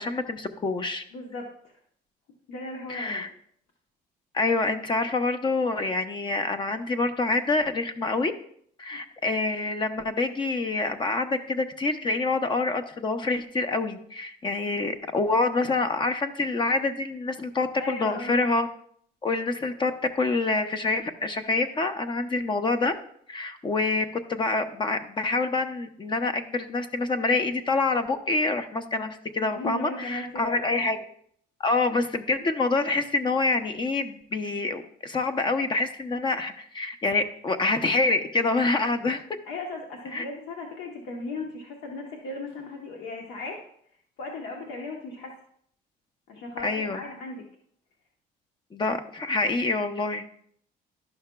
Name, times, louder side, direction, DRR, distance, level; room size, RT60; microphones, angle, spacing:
voice 1, 0.0-1.0 2.9-3.3 4.3-8.3 8.8-18.7 19.2-22.9 23.3-31.0 31.6-39.2 40.1-40.2 46.6-47.0 48.7-50.3, left 3 dB, 30° left, 10 dB, 0.6 m, -26 dB
voice 2, 1.1-1.7 2.5-3.3 8.9-9.0 17.8-18.5 29.5-30.8 39.5-43.6 44.2-45.4 46.3-47.4, left 2 dB, 80° left, 1 dB, 1.0 m, -37 dB
11.5 x 5.7 x 2.2 m, 0.64 s
cardioid pair, 110°, 17 cm